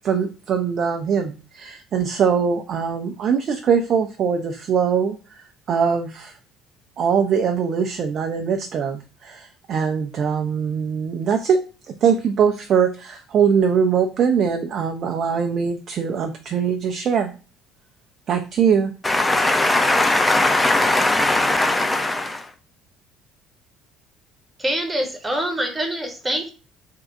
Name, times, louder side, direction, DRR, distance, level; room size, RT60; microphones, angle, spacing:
voice 1, 0.0-5.2 5.7-6.3 7.0-11.6 12.0-17.3 18.3-18.9, right 6 dB, 50° right, 5 dB, 0.5 m, -21 dB
voice 2, 19.0-22.4, left 2 dB, 15° left, 7 dB, 0.6 m, -19 dB
voice 3, 24.6-26.5, right 1 dB, 15° right, 4 dB, 0.9 m, -25 dB
3.6 x 2.3 x 3.9 m, 0.35 s
figure-of-eight pair, 55°, 0 cm